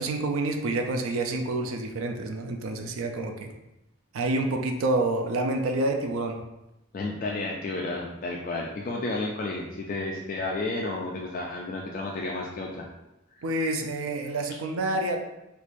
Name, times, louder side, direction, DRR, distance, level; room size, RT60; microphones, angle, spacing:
voice 1, 0.0-3.5 4.1-6.4 13.4-15.2, right 2 dB, 75° right, 4 dB, 0.4 m, -28 dB
voice 2, 6.9-12.8, left 2 dB, 40° left, -1 dB, 0.3 m, -32 dB
4.5 x 2.5 x 2.6 m, 0.92 s
head